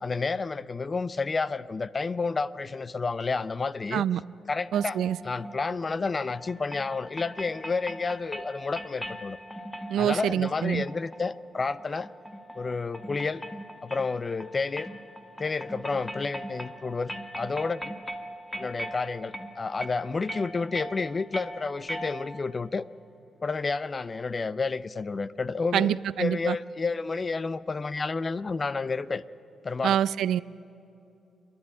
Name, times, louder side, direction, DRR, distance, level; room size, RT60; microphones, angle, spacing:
voice 1, 0.0-4.0 4.5-5.0 5.2-9.4 10.0-12.1 12.6-13.4 13.8-14.9 15.4-17.9 18.6-22.8 23.4-29.2 29.6-30.0, left 4 dB, 30° left, 18 dB, 0.4 m, -30 dB
sound 1, 4.7-22.6, equal, 5° left, 1.1 m, -41 dB
voice 2, 4.7-5.2 9.9-10.8 25.7-26.6 29.8-30.4, right 10 dB, 85° right, 19 dB, 0.4 m, -26 dB
26.5 x 10.5 x 9.7 m, 2.8 s
cardioid pair, 125°, 0 cm